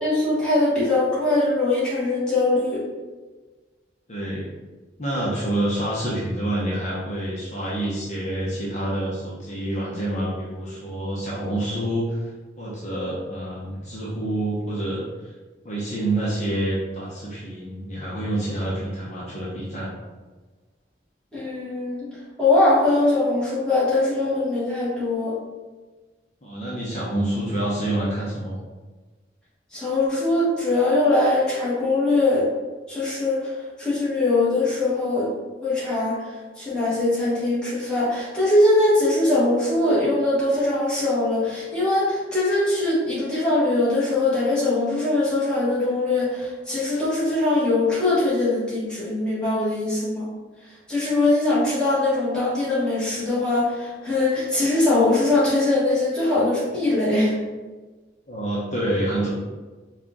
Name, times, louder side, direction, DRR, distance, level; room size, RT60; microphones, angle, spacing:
voice 1, 0.0-2.8 21.3-22.1 22.4-25.3 29.7-32.5 32.9-35.3 35.6-50.3 50.9-57.3, left 2 dB, 5° left, -10 dB, 1.4 m, -21 dB
voice 2, 4.1-4.4 5.0-12.2 12.6-15.1 15.6-19.9 26.4-28.6 58.3-59.3, right 1 dB, 40° left, -6 dB, 0.8 m, -27 dB
4.3 x 2.4 x 3.7 m, 1.3 s
head